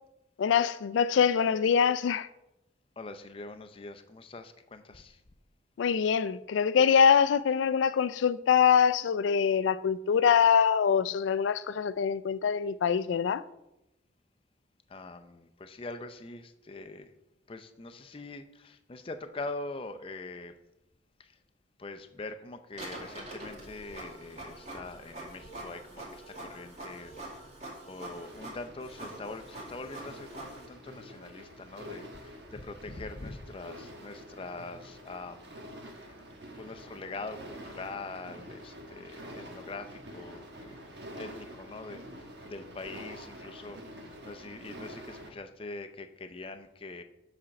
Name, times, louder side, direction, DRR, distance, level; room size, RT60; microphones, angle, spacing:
voice 1, 0.4-2.3 5.8-13.4, left 7 dB, 85° left, 0.3 m, -24 dB
voice 2, 3.0-5.1 14.9-17.1 17.5-20.5 21.8-27.1 27.8-35.5 36.6-42.0 42.5-43.8 44.2-47.0, left 3 dB, 30° left, 0.5 m, -43 dB
Printer, 22.7-30.7, right 1 dB, 40° right, 2.1 m, -44 dB
sound 1, 28.1-45.3, equal, 65° right, 1.2 m, -47 dB
7.5 x 4.3 x 5.9 m
head